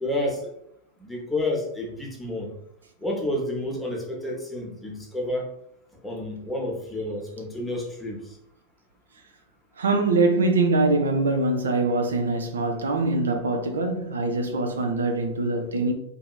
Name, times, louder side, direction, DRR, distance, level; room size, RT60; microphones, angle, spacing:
voice 1, 0.0-0.5 1.0-2.5 3.0-5.5 6.0-8.2, left 1 dB, 5° left, 0.7 m, -30 dB
voice 2, 9.8-15.9, right 2 dB, 70° right, 0.3 m, -23 dB
2.7 x 2.4 x 2.2 m
figure-of-eight pair, 90°, 0 cm